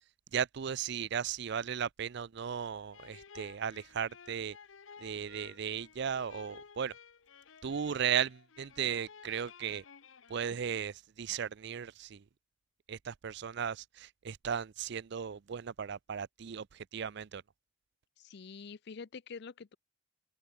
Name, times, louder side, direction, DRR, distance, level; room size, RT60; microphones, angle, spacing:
voice 1, 0.3-4.6 5.0-6.9 7.6-9.8 10.3-12.2 12.9-17.4, right 8 dB, 60° right, 0.5 m, -36 dB
sound 1, 2.9-11.0, left 6 dB, 80° left, 0.8 m, -55 dB
voice 2, 18.2-19.8, left 5 dB, 55° left, 0.5 m, -47 dB
open air
head